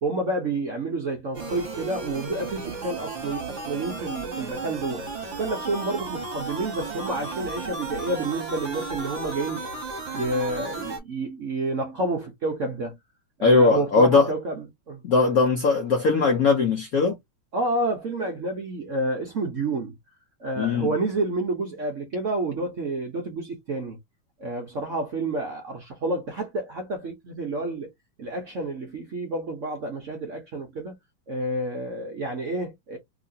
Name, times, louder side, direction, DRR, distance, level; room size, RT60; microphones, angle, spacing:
voice 1, 0.0-9.7 10.1-13.0 13.4-15.0 17.5-19.9 20.4-24.0 24.4-27.9 28.2-30.9 31.3-33.0, right 2 dB, 75° right, 0.7 m, -29 dB
sound 1, 1.3-11.0, right 3 dB, 45° right, 1.1 m, -34 dB
voice 2, 13.4-14.3 15.0-17.2 20.6-20.9, left 4 dB, 85° left, 0.7 m, -19 dB
3.1 x 2.9 x 2.6 m
omnidirectional pair, 2.4 m